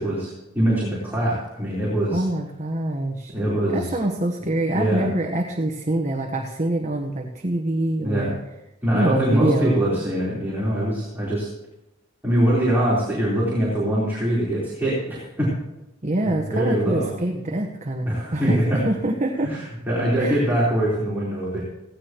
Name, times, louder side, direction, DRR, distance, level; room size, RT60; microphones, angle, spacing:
voice 1, 0.0-2.2 3.3-3.9 4.7-5.1 8.0-8.3 8.8-11.5 12.2-15.5 16.2-17.1 18.0-18.8 19.4-21.6, right 1 dB, 10° right, -9 dB, 4.1 m, -23 dB
voice 2, 2.1-3.3 3.7-8.4 8.9-10.0 16.0-19.5 20.2-20.5, right 1 dB, 40° right, 2 dB, 1.2 m, -25 dB
17.0 x 16.0 x 3.1 m, 0.92 s
head